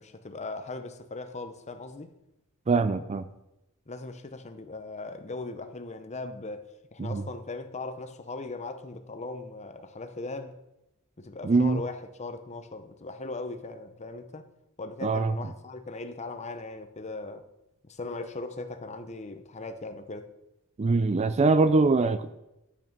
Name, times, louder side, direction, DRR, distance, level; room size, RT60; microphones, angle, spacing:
voice 1, 0.0-2.1 3.9-10.6 11.2-14.5 14.8-17.5 17.9-20.3, left 3 dB, 30° left, 0.8 m, -39 dB
voice 2, 2.7-3.3 7.0-7.2 11.4-11.8 15.0-15.3 20.8-22.3, right 3 dB, 30° right, 0.4 m, -23 dB
9.1 x 8.5 x 5.3 m
head